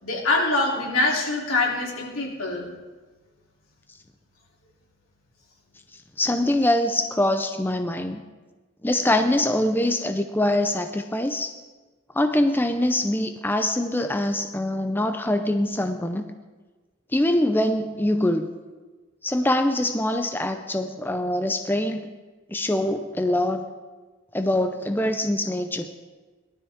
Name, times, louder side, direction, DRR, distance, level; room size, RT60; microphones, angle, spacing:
voice 1, 0.0-2.7, left 2 dB, 90° left, -3 dB, 3.3 m, -24 dB
voice 2, 6.2-8.2 8.8-11.5 12.1-16.3 17.1-18.5 19.2-22.1 22.5-23.6 24.3-25.9, left 1 dB, 10° left, 6 dB, 0.5 m, -24 dB
19.0 x 12.0 x 3.6 m, 1.3 s
head